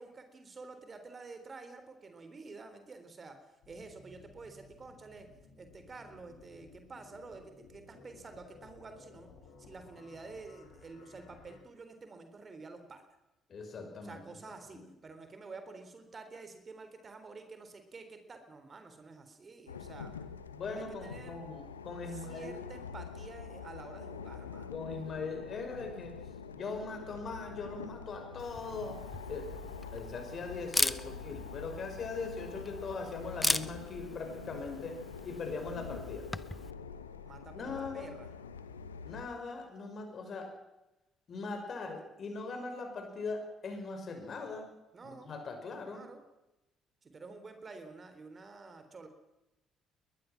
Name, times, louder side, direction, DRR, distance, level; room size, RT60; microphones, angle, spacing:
voice 1, 0.0-3.4 3.7-5.3 5.6-9.3 9.6-13.0 14.0-20.1 20.7-21.4 22.1-24.8 37.2-38.3 44.9-45.3 45.9-46.2 47.0-49.1, right 3 dB, 35° right, 8 dB, 3.7 m, -49 dB
sound 1, 3.6-11.6, left 4 dB, 65° left, 4.2 m, -58 dB
voice 2, 13.5-14.2 14.7-14.9 19.9-20.0 20.5-22.6 24.7-26.1 26.5-29.0 29.3-29.5 29.9-35.0 35.2-36.3 37.5-38.1 39.0-40.5 41.3-44.7 45.0-46.1, left 4 dB, 45° left, 5 dB, 6.0 m, -40 dB
sound 2, 19.7-39.3, left 6 dB, 85° left, 1.0 m, -46 dB
Camera, 28.4-36.7, left 1 dB, 10° left, 1.1 m, -38 dB
22.0 x 20.0 x 6.0 m, 0.97 s
figure-of-eight pair, 45°, 0 cm